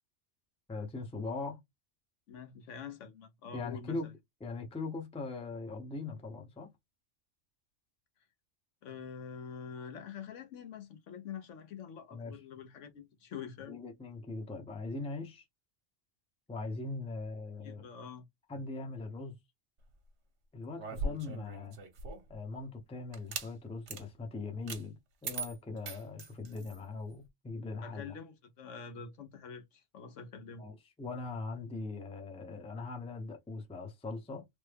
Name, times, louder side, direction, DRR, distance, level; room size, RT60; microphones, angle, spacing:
voice 1, 0.7-1.6 3.5-4.1 4.4-6.7 12.1-12.4 13.7-15.4 16.5-17.8 18.5-19.3 20.5-21.8 22.3-28.2 30.6-34.4, left 3 dB, 10° left, 0.4 m, -40 dB
voice 2, 2.3-4.0 8.8-13.8 17.6-18.2 27.8-30.6, left 6 dB, 80° left, 1.1 m, -46 dB
sound 1, 20.8-22.3 23.1-23.5 23.9-24.0 24.7-24.8 25.2-26.8, right 3 dB, 70° right, 1.1 m, -40 dB
3.2 x 2.1 x 3.3 m
omnidirectional pair, 1.2 m